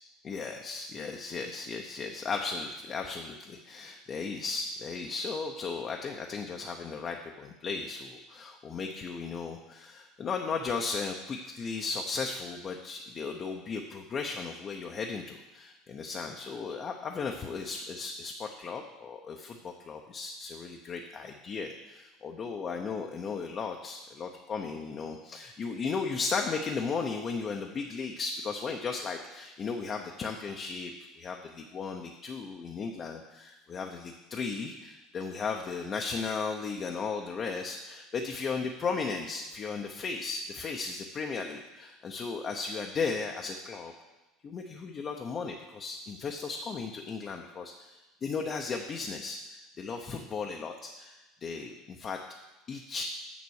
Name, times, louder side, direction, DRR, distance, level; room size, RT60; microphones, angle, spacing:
voice 1, 0.2-43.9 44.4-52.2 52.7-53.1, left 4 dB, 30° left, 2 dB, 0.7 m, -36 dB
7.3 x 7.0 x 6.4 m, 1.1 s
cardioid pair, 140°, 0 cm